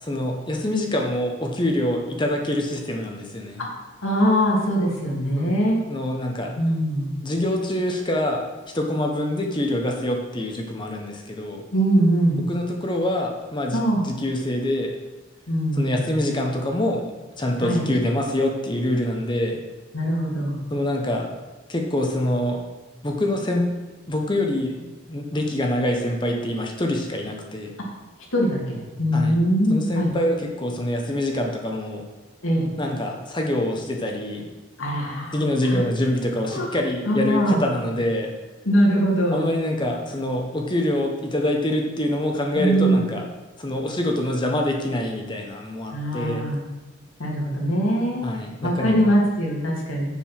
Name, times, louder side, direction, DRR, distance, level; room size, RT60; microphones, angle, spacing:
voice 1, 0.0-3.6 5.4-5.5 5.9-6.5 7.2-8.5 8.7-11.6 12.5-14.9 15.7-17.0 17.4-19.6 20.7-21.3 21.7-22.6 23.0-23.7 24.1-27.7 29.1-29.3 29.7-32.0 32.8-34.5 35.3-38.3 39.3-43.2 43.6-46.4 48.2-49.1, left 1 dB, 20° left, 1 dB, 0.9 m, -25 dB
voice 2, 4.0-5.8 6.5-7.1 11.7-12.4 13.7-14.0 15.5-16.0 17.6-17.8 19.9-20.6 28.3-30.1 32.4-32.7 34.8-35.8 36.5-36.7 37.1-37.6 38.6-39.5 42.5-43.0 45.9-46.6 47.2-48.2 48.6-50.0, equal, 80° left, -2 dB, 2.6 m, -22 dB
7.2 x 6.9 x 5.8 m, 1.2 s
head